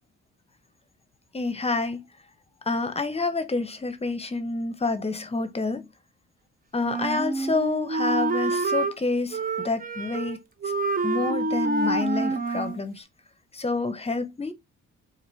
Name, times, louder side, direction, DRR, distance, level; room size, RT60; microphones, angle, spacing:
voice 1, 1.3-2.0 2.7-5.8 6.7-9.4 9.6-10.4 11.0-13.0 13.5-14.5, left 3 dB, 20° left, 0.9 m, -28 dB
Wind instrument woodwind instrument, 6.9-9.0 9.3-10.4 10.6-12.8, right 3 dB, 30° right, 0.8 m, -27 dB
4.5 x 2.5 x 3.1 m
cardioid pair, 90°, 30 cm